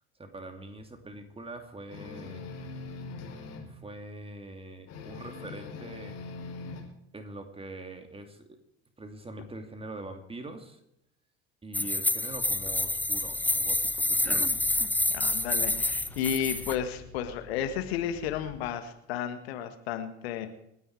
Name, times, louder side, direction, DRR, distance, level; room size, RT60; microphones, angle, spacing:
voice 1, 0.2-2.4 3.7-6.2 7.1-8.6 9.0-10.8 11.6-14.5, right 2 dB, 15° right, 6 dB, 2.9 m, -43 dB
sound 1, 1.9-3.7 4.9-6.8, left 4 dB, 50° left, 4.8 m, -41 dB
sound 2, 11.7-16.7, left 1 dB, 5° left, 0.9 m, -28 dB
sound 3, 12.3-18.6, left 4 dB, 85° left, 3.8 m, -49 dB
voice 2, 15.1-20.5, left 9 dB, 70° left, 8 dB, 1.8 m, -32 dB
28.0 x 10.0 x 4.9 m, 0.77 s
figure-of-eight pair, 65°, 32 cm